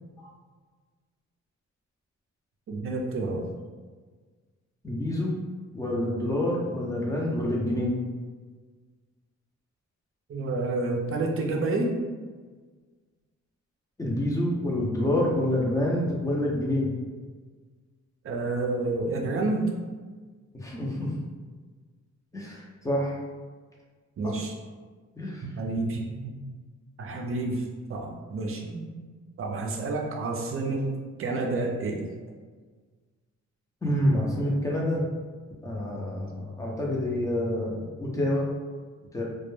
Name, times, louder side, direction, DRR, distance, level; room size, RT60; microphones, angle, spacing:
voice 1, 2.7-3.5 10.3-11.9 18.2-19.7 24.2-24.5 25.4-26.3 27.0-28.9 29.4-30.9 31.2-32.1, right 2 dB, 45° right, 1 dB, 0.4 m, -29 dB
voice 2, 4.8-5.3 5.7-7.9 14.0-16.9 20.6-21.1 22.3-23.2 24.2-24.4 25.2-25.4 33.8-35.0 35.6-38.5 39.1-39.2, left 1 dB, 10° left, -3 dB, 0.5 m, -27 dB
2.2 x 2.0 x 3.0 m, 1.5 s
wide cardioid pair, 120°, 30 cm